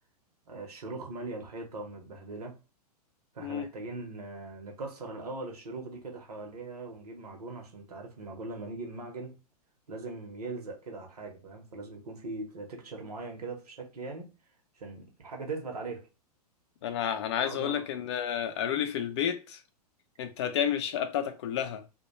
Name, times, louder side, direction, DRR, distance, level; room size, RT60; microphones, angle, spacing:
voice 1, 0.5-2.6 3.3-9.4 9.9-14.3 14.8-16.1 17.4-17.8, right 3 dB, 70° right, 0.8 m, -40 dB
voice 2, 16.8-19.6 20.2-21.8, left 9 dB, 45° left, 0.5 m, -31 dB
2.2 x 2.1 x 2.9 m
figure-of-eight pair, 105°, 20 cm